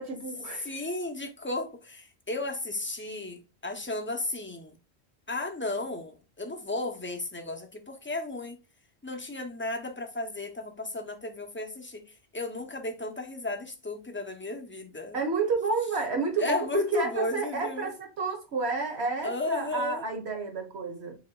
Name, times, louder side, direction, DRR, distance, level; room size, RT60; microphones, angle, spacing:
voice 1, 0.0-0.7 15.1-21.1, right 4 dB, 85° right, 1.4 m, -30 dB
voice 2, 0.5-4.8 5.3-8.6 9.0-15.2 16.4-17.9 19.2-20.1, left 2 dB, 15° left, 0.7 m, -34 dB
7.1 x 2.8 x 2.3 m
omnidirectional pair, 1.1 m